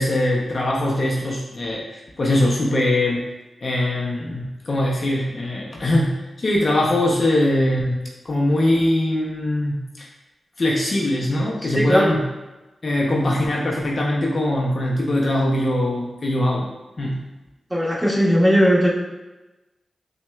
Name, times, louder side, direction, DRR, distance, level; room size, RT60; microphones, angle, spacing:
voice 1, 0.0-3.3 3.6-10.1 10.6-12.3 12.8-16.7 17.0-17.2, left 1 dB, 50° left, -3 dB, 0.6 m, -22 dB
voice 2, 17.7-18.9, equal, 5° right, -7 dB, 1.2 m, -17 dB
5.8 x 2.2 x 2.3 m, 1.1 s
cardioid pair, 60°, 0 cm